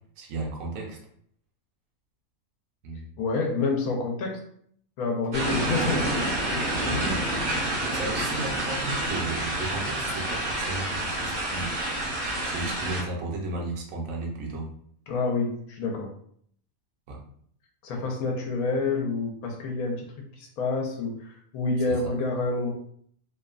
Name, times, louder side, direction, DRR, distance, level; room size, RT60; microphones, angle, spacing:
voice 1, 0.2-1.0 2.8-3.1 7.1-7.2 7.9-11.7 12.4-14.7 17.1-17.2 21.9-22.0, right 2 dB, 75° right, 0 dB, 1.0 m, -34 dB
voice 2, 3.2-4.4 5.0-7.2 15.1-16.1 17.8-20.1 20.4-22.7, left 3 dB, 85° left, 1 dB, 1.1 m, -28 dB
sound 1, 5.3-13.0, right 1 dB, 50° right, 0.5 m, -28 dB
2.8 x 2.1 x 2.3 m, 0.64 s
omnidirectional pair, 1.5 m